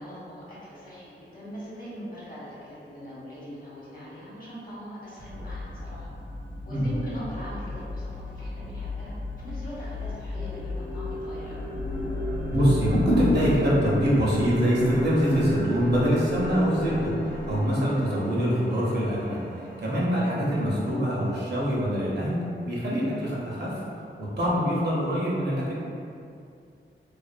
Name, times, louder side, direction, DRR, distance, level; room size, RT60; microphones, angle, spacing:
voice 1, 0.0-6.1 6.6-9.2 9.4-11.6, equal, 45° left, -9 dB, 1.0 m, -41 dB
sound 1, 5.2-13.8, left 4 dB, 75° right, 0.9 m, -35 dB
sound 2, 9.4-9.5 10.0-22.0, left 1 dB, 75° left, 0.5 m, -37 dB
sound 3, 11.7-17.7, left 1 dB, ahead, 0.4 m, -38 dB
voice 2, 12.5-25.7, equal, 55° right, -6 dB, 0.7 m, -24 dB
2.5 x 2.3 x 2.3 m, 2.4 s
wide cardioid pair, 70°, 20 cm